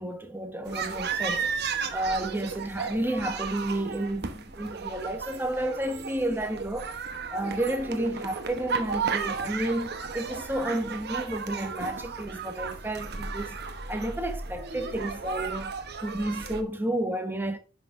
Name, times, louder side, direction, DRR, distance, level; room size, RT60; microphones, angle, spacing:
voice 1, 0.0-7.0 7.3-13.6 13.9-15.7 16.0-17.6, right 1 dB, 10° right, 1.2 m, -31 dB
sound 1, 0.7-16.6, right 5 dB, 55° right, 1.0 m, -34 dB
10.5 x 6.0 x 2.6 m
head